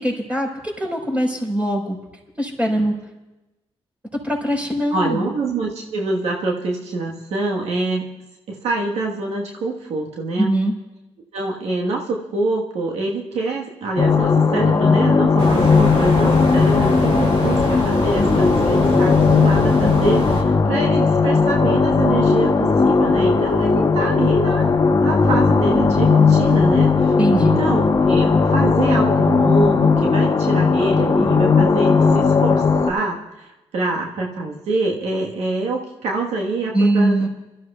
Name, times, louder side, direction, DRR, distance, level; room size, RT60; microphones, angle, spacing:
voice 1, 0.0-2.0 2.4-2.9 4.1-5.3 10.4-10.7 27.2-27.6 36.7-37.3, right 1 dB, 10° right, -1 dB, 4.6 m, -21 dB
voice 2, 2.6-3.0 4.9-8.1 8.5-10.5 11.3-24.7 25.0-27.1 27.4-37.2, right 2 dB, 85° right, -1 dB, 1.4 m, -25 dB
sound 1, 14.0-32.9, left 4 dB, 35° left, 1.0 m, -17 dB
sound 2, 15.4-20.4, right 1 dB, 50° right, 2.6 m, -25 dB
27.5 x 13.5 x 2.4 m, 1.0 s
cardioid pair, 70°, 11 cm